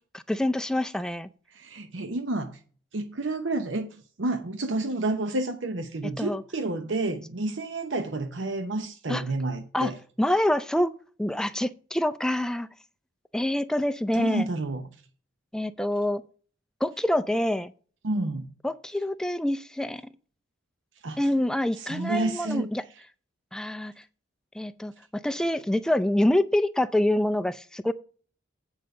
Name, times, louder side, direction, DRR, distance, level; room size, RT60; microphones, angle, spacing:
voice 1, 0.1-1.3 6.2-6.4 9.1-9.2 9.7-9.9 10.2-10.9 11.2-12.7 13.3-14.5 15.5-16.2 16.8-17.7 18.6-20.0 21.2-22.8 23.5-23.9 24.5-27.9, left 1 dB, 5° left, 0.4 m, -26 dB
voice 2, 1.5-2.6 2.9-10.0 14.1-14.9 18.0-18.5 21.0-21.2 21.8-22.7, right 2 dB, 75° right, 0.8 m, -30 dB
8.9 x 5.2 x 6.5 m
head